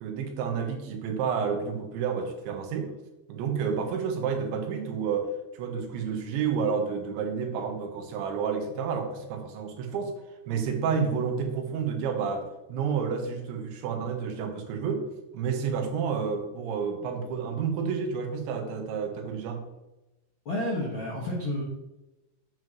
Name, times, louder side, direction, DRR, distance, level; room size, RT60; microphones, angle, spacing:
voice 1, 0.0-2.9 3.3-10.1 10.5-15.1 15.3-19.6, right 6 dB, 85° right, 4 dB, 3.6 m, -30 dB
voice 2, 20.4-21.6, left 1 dB, 70° left, -4 dB, 1.2 m, -30 dB
10.0 x 7.7 x 3.1 m, 1.0 s
omnidirectional pair, 5.2 m